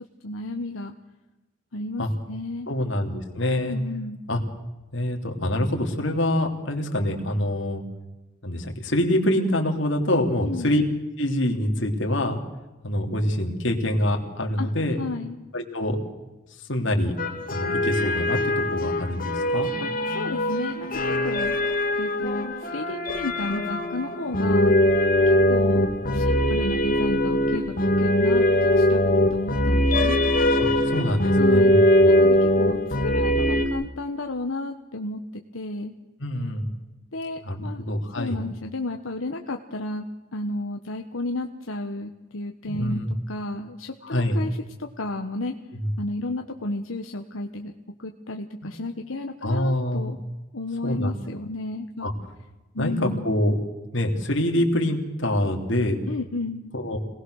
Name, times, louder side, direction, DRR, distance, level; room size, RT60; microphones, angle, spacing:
voice 1, 0.2-0.9 1.7-2.7 3.6-4.2 10.4-10.7 14.6-14.7 15.0-15.3 19.8-21.5 21.9-24.7 25.3-25.8 26.1-27.6 28.0-29.0 29.3-30.2 31.4-31.7 32.0-35.2 35.5-35.9 37.1-37.8 38.1-40.0 40.3-43.0 43.3-45.5 46.0-47.7 48.0-50.2 50.5-52.1 52.7-53.3 56.1-56.7, left 2 dB, 90° left, 4 dB, 1.3 m, -32 dB
voice 2, 2.7-3.8 4.3-4.4 4.9-7.8 8.4-10.8 11.2-12.4 12.8-15.0 15.5-16.0 16.7-17.1 17.5-19.7 30.6-32.3 36.2-36.7 37.4-38.4 42.7-43.1 44.0-44.4 45.7-45.9 49.4-50.1 50.8-51.1 52.0-52.1 52.8-53.6 53.9-56.1 56.7-57.0, left 1 dB, 65° left, 3 dB, 3.4 m, -25 dB
sound 1, 17.2-33.7, left 1 dB, 45° left, 2.4 m, -21 dB
26.5 x 19.0 x 6.5 m, 1.1 s
head